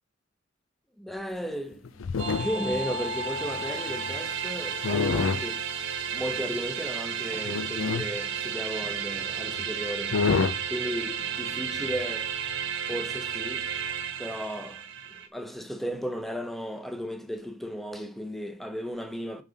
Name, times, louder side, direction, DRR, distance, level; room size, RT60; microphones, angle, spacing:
voice 1, 1.0-5.7 6.1-10.3 10.7-12.3 12.9-13.7 14.2-14.9 15.1-19.4, equal, ahead, 0.8 m, -35 dB
sound 1, 1.7-2.8 3.3-4.2 4.8-5.5 6.4-6.5 7.4-8.1 9.2-9.3 9.6-9.7 10.1-10.6 11.8-12.0, left 5 dB, 85° left, 0.5 m, -28 dB
sound 2, 2.2-15.3, right 6 dB, 70° right, 1.3 m, -33 dB
9.0 x 4.0 x 5.1 m
head